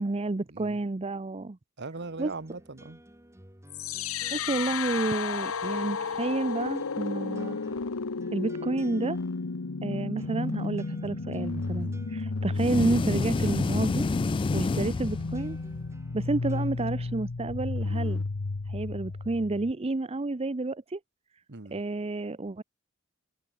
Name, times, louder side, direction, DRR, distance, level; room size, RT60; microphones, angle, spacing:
voice 1, 0.0-1.6 2.2-2.3 4.3-7.6 8.3-9.2 9.8-14.1 14.5-15.6 16.1-18.2 18.7-21.0 21.7-22.6, right 2 dB, 30° right, 0.6 m, -30 dB
voice 2, 1.8-3.0 11.8-12.0 21.5-21.8, right 3 dB, 55° right, 1.4 m, -40 dB
sound 1, 1.9-17.2, right 1 dB, 15° right, 3.5 m, -54 dB
sound 2, 3.7-19.7, left 4 dB, 85° left, 0.9 m, -33 dB
sound 3, 12.6-15.7, left 3 dB, 25° left, 0.3 m, -28 dB
head